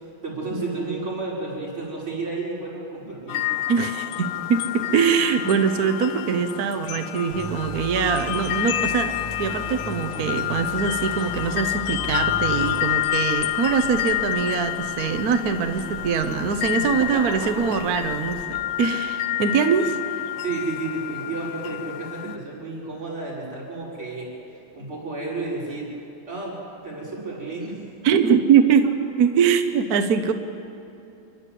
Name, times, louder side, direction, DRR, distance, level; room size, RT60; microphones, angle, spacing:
voice 1, 0.2-3.4 16.7-17.3 20.4-24.3 24.7-25.9 26.3-26.6 26.8-27.8, right 3 dB, 75° right, -5 dB, 6.5 m, -31 dB
sound 1, 3.3-22.4, left 14 dB, 85° left, 1.6 m, -29 dB
voice 2, 3.7-20.3 28.0-28.9 29.2-30.3, right 6 dB, 55° right, 8 dB, 1.2 m, -22 dB
sound 2, 7.3-12.8, left 1 dB, 15° left, 3.5 m, -36 dB
sound 3, 12.6-18.5, left 2 dB, 55° left, 1.8 m, -43 dB
29.0 x 11.5 x 8.3 m, 2.9 s
omnidirectional pair, 2.3 m